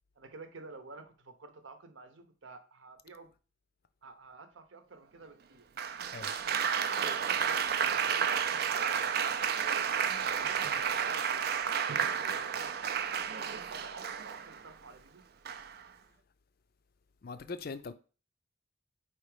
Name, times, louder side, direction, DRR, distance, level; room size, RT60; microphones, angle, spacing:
voice 1, 0.2-3.3 4.0-5.7 6.4-9.1 9.6-11.4 11.7-12.7 13.2-15.2, right 3 dB, 70° right, 0.8 m, -51 dB
Applause, 5.8-14.6 15.5-15.9, right 7 dB, 50° right, 0.4 m, -31 dB
voice 2, 17.2-17.9, left 4 dB, 45° left, 0.4 m, -41 dB
4.5 x 4.3 x 4.9 m
head